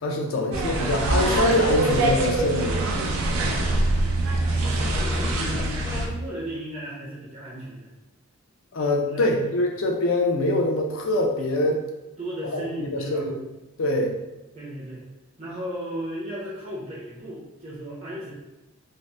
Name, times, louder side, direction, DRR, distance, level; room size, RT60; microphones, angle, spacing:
voice 1, 0.0-2.8 8.7-11.8 12.5-13.4 13.8-14.2, left 1 dB, 70° left, 2 dB, 0.5 m, -24 dB
sound 1, 0.5-6.1, right 2 dB, 85° right, 0.5 m, -24 dB
voice 2, 3.3-4.1 4.5-7.9 9.1-9.5 12.2-13.3 14.5-15.0 15.4-18.3, right 1 dB, 30° right, -7 dB, 0.6 m, -36 dB
2.7 x 2.0 x 3.1 m, 1.0 s
head